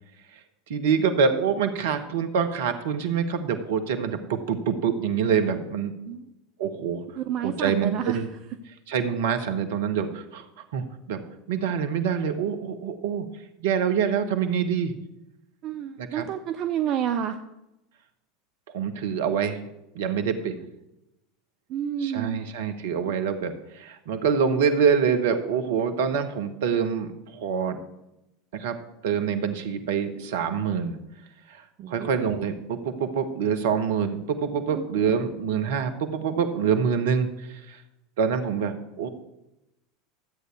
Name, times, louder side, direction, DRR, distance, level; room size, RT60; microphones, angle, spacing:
voice 1, 0.7-5.9 6.6-7.0 7.4-8.3 8.9-10.5 10.7-11.2 11.5-13.3 13.6-14.9 16.0-16.3 18.7-19.6 19.9-20.6 22.0-27.8 28.5-28.8 29.0-31.0 31.5-37.8 38.2-39.1, right 6 dB, 65° right, 8 dB, 1.2 m, -26 dB
voice 2, 7.2-8.2 15.6-17.4 21.7-22.4 31.8-32.1 34.7-34.9, right 9 dB, 45° right, 9 dB, 0.6 m, -29 dB
13.0 x 8.1 x 4.6 m, 0.91 s
figure-of-eight pair, 80°, 0 cm